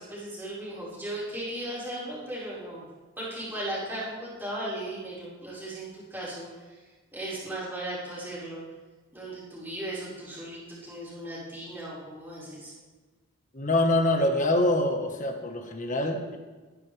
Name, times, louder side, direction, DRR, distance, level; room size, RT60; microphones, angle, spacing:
voice 1, 0.0-2.8 3.2-6.5 7.1-8.6 9.1-12.7, right 1 dB, 10° right, -9 dB, 5.0 m, -36 dB
voice 2, 13.5-16.4, left 1 dB, 35° left, 3 dB, 1.5 m, -25 dB
20.5 x 10.5 x 3.5 m, 1.3 s
head